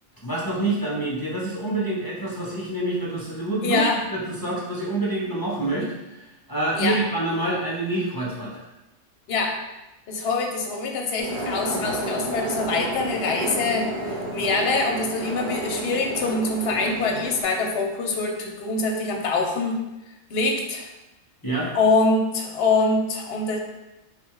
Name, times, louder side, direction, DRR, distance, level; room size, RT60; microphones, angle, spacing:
voice 1, 0.2-3.8 4.1-8.6 21.4-21.7, right 2 dB, 25° left, -6 dB, 0.5 m, -27 dB
voice 2, 3.6-4.0 6.7-7.0 9.3-9.6 10.1-19.8 20.3-20.9 21.7-23.6, left 3 dB, 60° left, 2 dB, 0.8 m, -24 dB
sound 1, 11.2-17.4, right 1 dB, 45° right, 0.9 m, -31 dB
4.2 x 2.2 x 4.6 m, 1.0 s
omnidirectional pair, 1.3 m